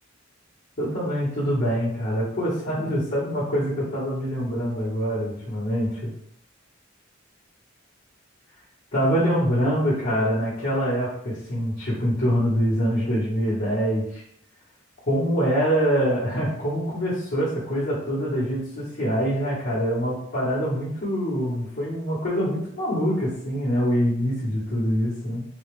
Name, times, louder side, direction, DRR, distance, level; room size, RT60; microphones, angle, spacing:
voice 1, 0.8-6.1 8.9-14.2 15.1-25.4, equal, 55° left, -12 dB, 1.6 m, -24 dB
3.9 x 2.8 x 3.4 m, 0.68 s
head